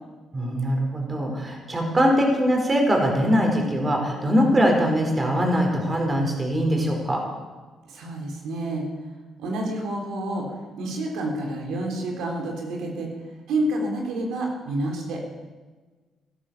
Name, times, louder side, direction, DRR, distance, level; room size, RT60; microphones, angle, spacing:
voice 1, 0.3-7.2, equal, 25° right, 1 dB, 4.5 m, -22 dB
voice 2, 7.9-8.9 9.4-13.1 13.5-15.2, right 1 dB, 85° right, 1 dB, 3.4 m, -29 dB
16.5 x 12.0 x 7.0 m, 1.3 s
cardioid pair, 90°, 0 cm